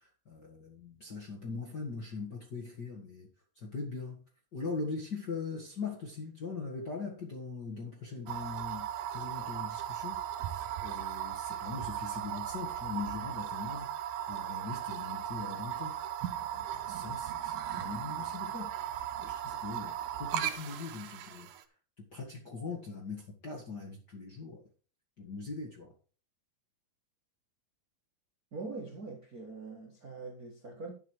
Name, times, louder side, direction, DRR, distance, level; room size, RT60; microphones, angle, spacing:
voice 1, 0.0-3.3 3.5-4.2 4.5-18.7 19.2-21.5 22.0-24.6 25.2-25.9, left 4 dB, 45° left, 1.4 m, -41 dB
sound 1, 8.3-21.6, right 11 dB, 75° right, 2.0 m, -37 dB
voice 2, 28.5-30.9, right 3 dB, 55° right, 0.9 m, -43 dB
11.5 x 5.8 x 4.8 m
omnidirectional pair, 4.6 m